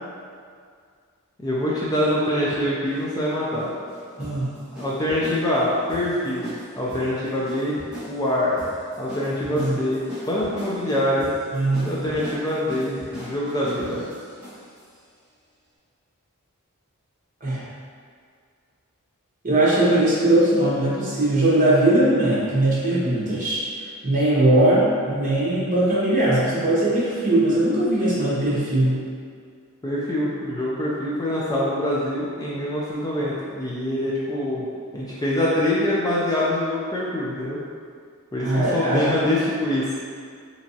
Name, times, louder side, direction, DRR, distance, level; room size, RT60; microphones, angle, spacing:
voice 1, 1.4-3.7 4.8-7.8 8.1-8.6 9.0-11.3 11.8-14.0 29.8-34.6 34.9-37.6 38.3-40.0, left 1 dB, 15° left, -7 dB, 0.3 m, -24 dB
sound 1, 2.8-14.9, left 1 dB, 5° right, 0.9 m, -40 dB
voice 2, 4.2-4.5 9.5-9.7 11.5-11.9 17.4-17.6 19.4-23.6 24.0-29.0 38.4-39.1, right 1 dB, 35° right, -8 dB, 1.0 m, -20 dB
3.4 x 2.9 x 2.7 m, 2.1 s
head